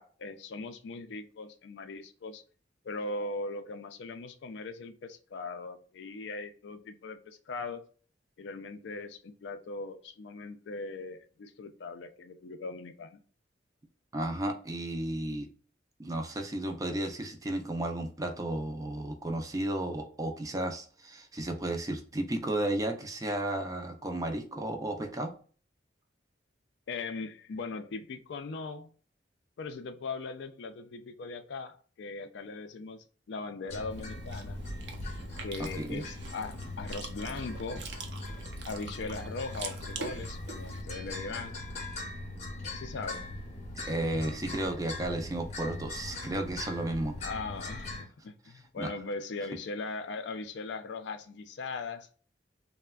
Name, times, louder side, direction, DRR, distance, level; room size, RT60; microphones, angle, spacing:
voice 1, 0.0-2.4 2.8-7.8 8.4-13.2 26.9-28.9 29.6-34.6 35.4-37.9 38.6-41.6 42.7-43.3 47.2-52.1, left 3 dB, 70° left, 8 dB, 0.4 m, -39 dB
voice 2, 14.1-15.5 16.0-25.3 35.6-36.0 43.8-47.2 48.8-48.9, right 1 dB, 20° right, 4 dB, 0.4 m, -33 dB
sound 1, 33.7-48.0, left 2 dB, 40° left, 0.7 m, -40 dB
Chewing mastication, 33.9-40.8, right 3 dB, 65° right, 0.6 m, -44 dB
3.3 x 2.1 x 2.2 m, 0.41 s
head